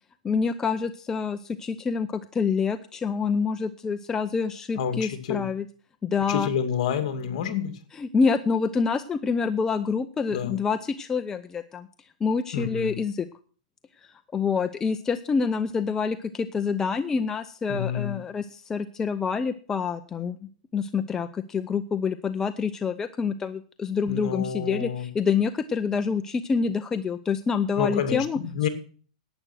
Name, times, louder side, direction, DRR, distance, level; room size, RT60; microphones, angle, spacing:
voice 1, 0.2-5.7 6.0-6.5 7.9-11.9 12.2-13.3 14.3-20.4 20.7-28.4, left 5 dB, 15° left, 10 dB, 0.6 m, -27 dB
voice 2, 4.8-5.5 6.3-7.8 10.3-10.6 12.5-13.0 17.7-18.2 24.1-25.1 27.8-28.7, left 8 dB, 55° left, 8 dB, 2.4 m, -28 dB
11.5 x 8.9 x 6.3 m, 0.41 s
hypercardioid pair, 140°, 4 cm